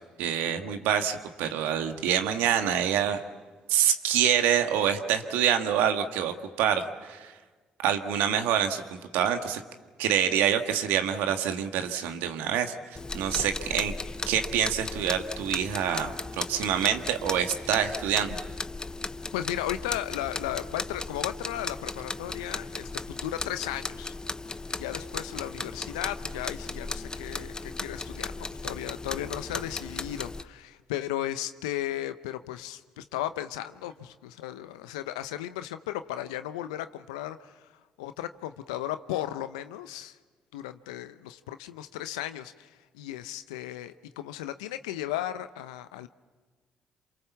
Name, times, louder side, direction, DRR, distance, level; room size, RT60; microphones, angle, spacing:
voice 1, 0.2-3.2 3.7-7.3 7.8-9.6 10.0-12.7 13.1-13.9 14.3-18.4, right 9 dB, 75° right, 7 dB, 1.7 m, -26 dB
sound 1, 13.0-30.4, left 3 dB, 20° left, 0.9 m, -36 dB
voice 2, 19.3-24.1 24.7-37.7 38.0-40.2 40.5-46.1, left 13 dB, 85° left, 11 dB, 0.7 m, -35 dB
28.0 x 27.5 x 7.2 m, 1.4 s
hypercardioid pair, 45°, 3 cm